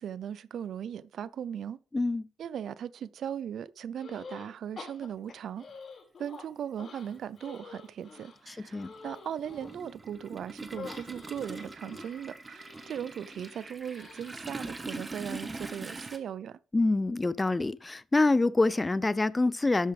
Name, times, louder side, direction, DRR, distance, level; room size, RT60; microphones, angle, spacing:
voice 1, 0.0-1.8 2.4-5.7 6.2-16.6, right 9 dB, 65° right, 0.5 m, -38 dB
voice 2, 1.9-2.3 8.5-8.9 16.7-19.9, left 2 dB, 20° left, 0.4 m, -26 dB
sound 1, 4.0-4.5 4.8-6.4 6.8-9.8 10.7-14.5, left 4 dB, 45° left, 5.4 m, -48 dB
Toilet flush, 5.7-5.8 7.1-7.2 7.5-16.2, right 2 dB, 20° right, 1.3 m, -43 dB
12.0 x 8.0 x 3.4 m
cardioid pair, 90°, 0 cm